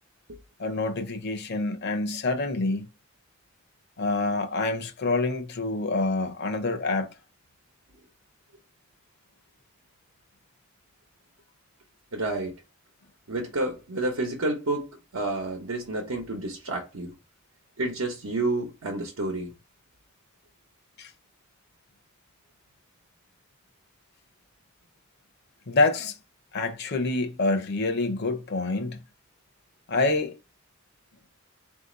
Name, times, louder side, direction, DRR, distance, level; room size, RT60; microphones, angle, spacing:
voice 1, 0.6-2.9 4.0-7.1 21.0-21.1 25.7-26.2 26.5-29.0 29.9-30.3, left 3 dB, 50° left, 0.6 m, -26 dB
voice 2, 12.1-12.5 13.3-17.1 17.8-19.5, right 2 dB, 85° right, 0.9 m, -30 dB
4.0 x 2.7 x 3.8 m
head